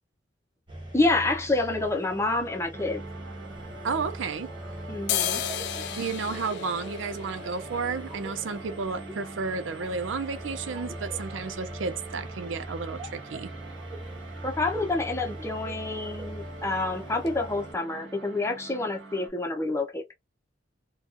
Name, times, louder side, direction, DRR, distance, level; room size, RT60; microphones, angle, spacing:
sound 1, 0.7-17.7, right 1 dB, 25° right, 1.1 m, -41 dB
voice 1, 0.9-3.0 4.9-5.4 14.4-20.1, left 2 dB, 15° left, 0.7 m, -28 dB
sound 2, 2.7-19.3, right 4 dB, 65° right, 1.4 m, -45 dB
sound 3, 3.5-4.6 4.9-12.6 12.9-13.0 13.3-13.9 14.2-14.4 14.7-14.9 15.2-15.9 16.2-16.4 16.9-17.0 17.3-17.4, left 10 dB, 60° left, 0.4 m, -36 dB
voice 2, 3.8-4.5 5.9-13.5, right 4 dB, 85° right, 0.5 m, -32 dB
2.6 x 2.3 x 2.4 m
head